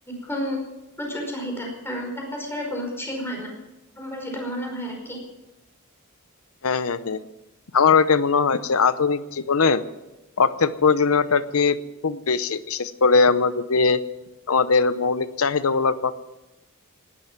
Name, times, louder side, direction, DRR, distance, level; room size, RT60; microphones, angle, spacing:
voice 1, 0.2-0.6 1.0-3.6 3.9-5.2, equal, 10° left, 0 dB, 5.0 m, -31 dB
voice 2, 6.6-7.2 7.7-9.8 10.4-11.8 12.0-14.0 14.5-16.1, left 5 dB, 80° left, 14 dB, 0.8 m, -20 dB
18.5 x 12.5 x 6.0 m, 1.0 s
head